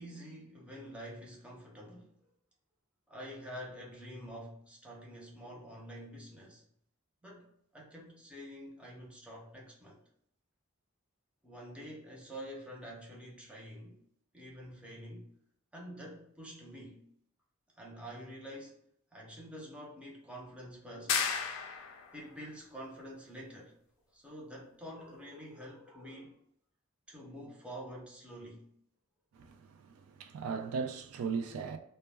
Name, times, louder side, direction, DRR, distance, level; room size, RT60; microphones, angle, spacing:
voice 1, 0.0-2.1 3.1-6.6 7.2-10.0 11.4-14.0 14.3-15.3 15.7-17.0 17.7-18.8 19.1-21.2 22.1-23.7 24.1-26.4 27.1-28.7, equal, 5° right, 0.5 m, -47 dB
sound 1, 21.1-22.2, left 6 dB, 70° left, 0.4 m, -33 dB
voice 2, 30.2-31.8, right 5 dB, 80° right, 0.3 m, -36 dB
2.2 x 2.1 x 3.2 m
head